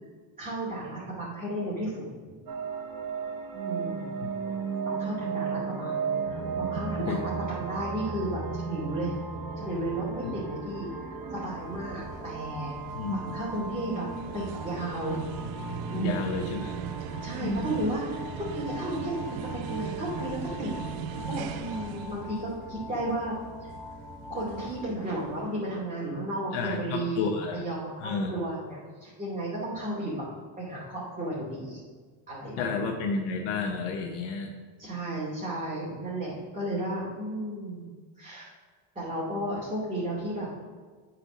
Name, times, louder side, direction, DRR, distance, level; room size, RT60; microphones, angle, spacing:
voice 1, 0.4-2.4 3.7-4.2 4.8-9.2 9.5-12.7 13.1-15.2 15.9-16.2 17.2-18.2 18.5-23.7 24.3-30.2 30.6-31.8 32.3-32.8 34.8-37.9 38.2-38.5 38.9-40.5, right 1 dB, 15° right, -8 dB, 2.7 m, -34 dB
sound 1, 2.5-20.3, right 5 dB, 45° right, 1.2 m, -36 dB
sound 2, 9.3-24.8, left 2 dB, ahead, 0.9 m, -44 dB
sound 3, 11.2-25.7, right 8 dB, 70° right, 0.8 m, -40 dB
voice 2, 15.9-16.7 17.4-17.7 26.5-27.6 28.0-28.3 32.6-34.5, left 4 dB, 80° left, 3 dB, 1.0 m, -31 dB
7.7 x 4.5 x 6.3 m, 1.5 s
supercardioid pair, 90°, 50 cm